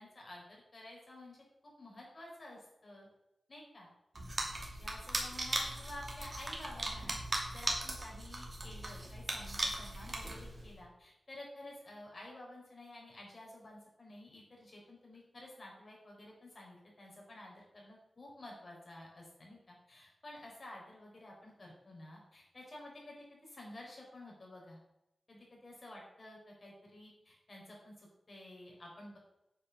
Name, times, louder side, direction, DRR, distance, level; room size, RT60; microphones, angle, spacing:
voice 1, 0.0-1.4 1.8-3.1 3.5-3.9 4.4-7.2 7.5-24.8 25.3-29.2, left 1 dB, 40° left, -2 dB, 4.6 m, -52 dB
sound 1, 4.1-10.7, right 2 dB, 35° right, 2.4 m, -38 dB
8.5 x 6.9 x 6.7 m, 0.88 s
wide cardioid pair, 120°, 0 cm